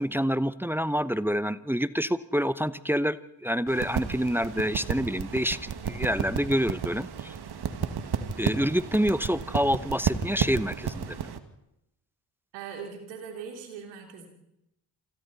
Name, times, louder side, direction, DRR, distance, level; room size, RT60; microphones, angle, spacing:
voice 1, 0.0-7.3 8.4-11.3, equal, 5° right, 15 dB, 0.9 m, -27 dB
sound 1, 3.7-11.4, right 7 dB, 55° right, 2.0 m, -32 dB
voice 2, 12.5-14.3, right 6 dB, 85° right, 3 dB, 3.4 m, -40 dB
27.5 x 27.0 x 4.2 m, 0.85 s
hypercardioid pair, 45°, 47 cm